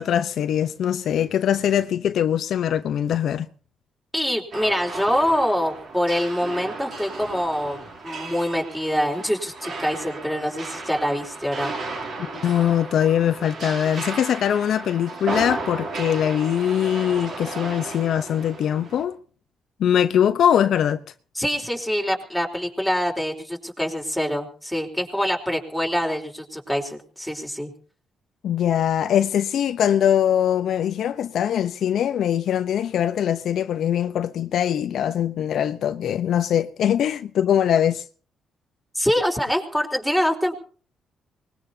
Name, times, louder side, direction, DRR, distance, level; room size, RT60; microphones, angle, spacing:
voice 1, 0.0-3.5 12.2-19.2 19.8-21.0 28.4-38.0, left 9 dB, 70° left, 0.8 m, -22 dB
voice 2, 4.1-11.7 21.3-27.7 38.9-40.6, equal, ahead, 4.3 m, -25 dB
sound 1, 4.5-19.0, right 3 dB, 60° right, 7.2 m, -34 dB
24.5 x 20.5 x 2.8 m
cardioid pair, 90°, 0 cm